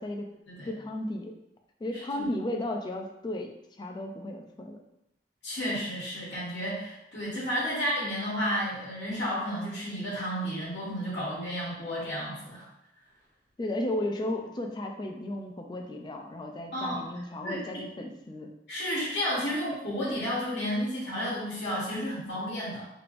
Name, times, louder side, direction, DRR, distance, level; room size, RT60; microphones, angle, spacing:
voice 1, 0.6-1.4 1.8-3.5 3.8-4.8 13.6-18.5, left 1 dB, 25° left, 2 dB, 0.3 m, -34 dB
voice 2, 1.9-2.3 5.4-12.7 16.7-17.0 17.4-17.8 18.7-22.8, equal, 75° left, -8 dB, 1.2 m, -32 dB
3.3 x 3.1 x 2.5 m, 0.84 s
head